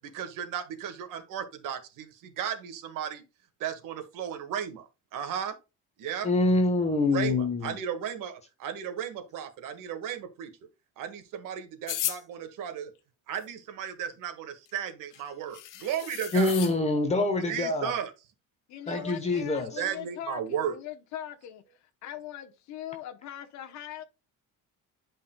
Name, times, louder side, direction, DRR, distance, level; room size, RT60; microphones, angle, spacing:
voice 1, 0.1-3.2 3.6-5.6 6.0-6.3 7.1-10.5 11.0-12.9 13.3-16.6 17.5-18.1 19.0-19.1 19.8-20.8, right 9 dB, 85° right, 1.8 m, -35 dB
voice 2, 6.2-7.8 16.3-18.0 18.9-19.8, left 2 dB, 20° left, 1.1 m, -25 dB
sound 1, 11.9-12.2 14.7-14.8 15.1-15.2 15.5-16.7, left 12 dB, 80° left, 1.2 m, -34 dB
voice 3, 18.7-21.6 22.0-24.0, left 11 dB, 60° left, 1.0 m, -40 dB
10.5 x 5.4 x 2.3 m
cardioid pair, 175°, 31 cm